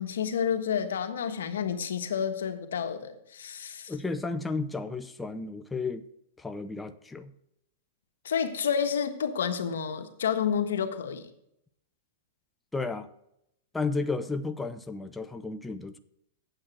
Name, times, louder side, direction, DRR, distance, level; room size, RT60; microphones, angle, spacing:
voice 1, 0.0-3.9 8.2-11.3, left 7 dB, 90° left, 7 dB, 1.4 m, -30 dB
voice 2, 3.9-6.1 6.4-7.3 12.7-13.1 13.7-16.0, left 3 dB, 10° left, 8 dB, 0.7 m, -33 dB
9.0 x 8.0 x 6.1 m, 0.78 s
hypercardioid pair, 140°, 0 cm